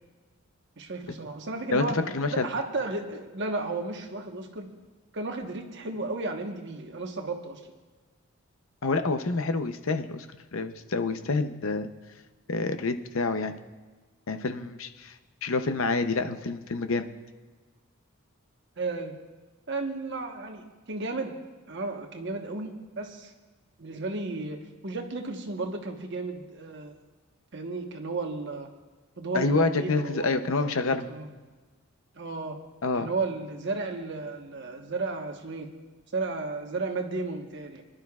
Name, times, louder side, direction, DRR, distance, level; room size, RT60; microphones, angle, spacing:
voice 1, 0.8-2.0 2.3-4.7 5.1-7.6 18.8-19.1 19.7-21.4 21.7-23.3 23.8-26.9 27.5-28.7 29.2-31.3 32.1-32.6 32.9-35.7 36.1-37.8, right 3 dB, 55° right, 3 dB, 1.2 m, -33 dB
voice 2, 1.7-2.5 8.8-10.3 10.5-11.9 12.5-13.5 14.3-15.1 15.4-17.1 29.3-31.1 32.8-33.1, left 3 dB, 65° left, 8 dB, 0.7 m, -27 dB
24.0 x 11.5 x 2.4 m, 1.3 s
head